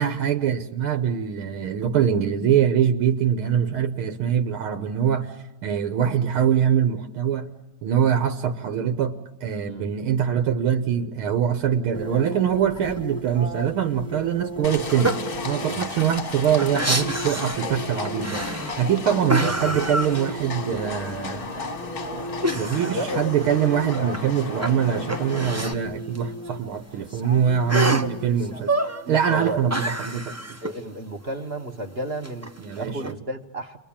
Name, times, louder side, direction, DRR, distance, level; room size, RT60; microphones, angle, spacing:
voice 1, 0.0-5.4 5.6-7.5 7.8-15.2 15.4-21.5 22.5-28.7 29.1-30.4 32.6-33.1, right 8 dB, 75° right, 2.0 m, -23 dB
sound 1, 11.9-28.6, right 1 dB, 10° left, 1.4 m, -37 dB
Livestock farm animals working animals, 14.6-25.7, left 4 dB, 30° left, 1.3 m, -34 dB
sound 2, 14.9-15.3 15.7-15.8 16.1-17.7 18.0-18.9 19.3-20.8 21.1-21.2 22.4-24.2 24.5-25.8 26.2-26.3 26.5-26.6 27.7-28.1 28.6-29.0 29.4-30.8 32.2-33.1, right 1 dB, 15° right, 0.5 m, -28 dB
voice 2, 19.2-19.8 22.9-23.3 23.9-24.3 27.7-28.1 29.0-29.8 30.6-33.8, equal, 30° right, 1.4 m, -32 dB
30.0 x 22.5 x 8.7 m
omnidirectional pair, 2.4 m